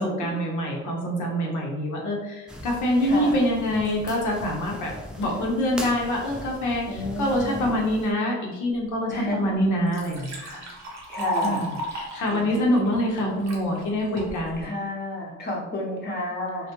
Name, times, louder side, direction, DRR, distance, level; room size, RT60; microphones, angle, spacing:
voice 1, 0.0-4.9 5.2-10.6 11.4-14.7, equal, 75° left, -1 dB, 0.8 m, -25 dB
sound 1, 2.5-8.1, equal, 5° right, 0.3 m, -40 dB
voice 2, 3.0-3.4 6.9-7.7 9.1-9.5 11.1-11.7 12.3-12.6 14.6-16.7, left 1 dB, 35° left, -3 dB, 0.8 m, -31 dB
Liquid, 9.1-9.2 9.6-13.6 14.2-14.6, equal, 60° right, 0.8 m, -33 dB
2.2 x 2.1 x 2.9 m, 1.0 s
cardioid pair, 90°, 30 cm